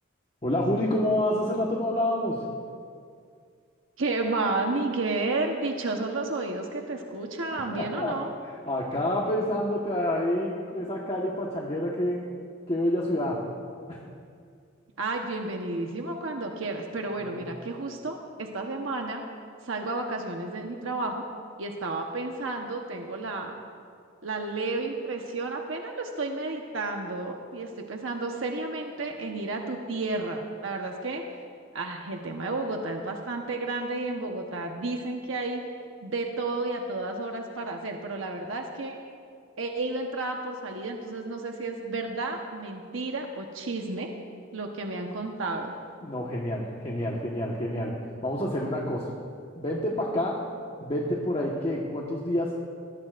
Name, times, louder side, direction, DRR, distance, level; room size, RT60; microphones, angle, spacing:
voice 1, 0.4-2.4 7.7-8.1 8.4-12.2 12.7-13.4 13.9-14.0 17.2-17.5 46.0-47.9 48.2-49.1 49.6-50.4 50.8-52.6, left 1 dB, 30° left, -3 dB, 1.4 m, -28 dB
voice 2, 4.0-8.3 15.0-19.2 19.6-21.2 21.6-23.5 24.2-31.2 31.7-35.6 36.0-38.9 39.6-44.1 44.5-45.7, right 2 dB, 75° right, 2 dB, 1.1 m, -32 dB
21.5 x 18.5 x 2.6 m, 2.3 s
head